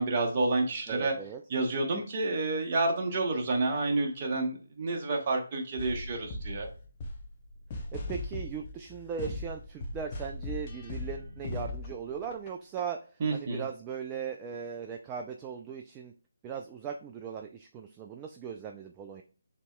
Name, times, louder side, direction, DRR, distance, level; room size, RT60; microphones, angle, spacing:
voice 1, 0.0-1.1 1.5-6.7 13.2-13.6, right 2 dB, 35° right, 1 dB, 1.1 m, -29 dB
voice 2, 0.9-1.4 7.7-13.0 13.3-16.1 16.4-19.2, right 7 dB, 15° right, 3 dB, 0.3 m, -38 dB
sound 1, 5.8-12.5 12.8-12.9, left 2 dB, 30° left, 0.8 m, -39 dB
6.6 x 2.9 x 2.2 m, 0.40 s
figure-of-eight pair, 150°, 0 cm